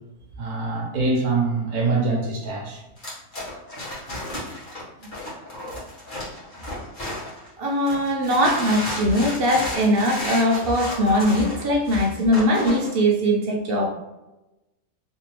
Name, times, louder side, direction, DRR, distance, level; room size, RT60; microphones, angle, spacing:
voice 1, 0.4-2.8, right 3 dB, 75° right, -1 dB, 1.3 m, -24 dB
sound 1, 3.0-7.5 7.9-12.9, left 1 dB, 35° left, 1.3 m, -33 dB
voice 2, 7.6-13.9, equal, 55° right, -1 dB, 0.6 m, -21 dB
3.3 x 2.9 x 3.0 m, 0.99 s
omnidirectional pair, 1.6 m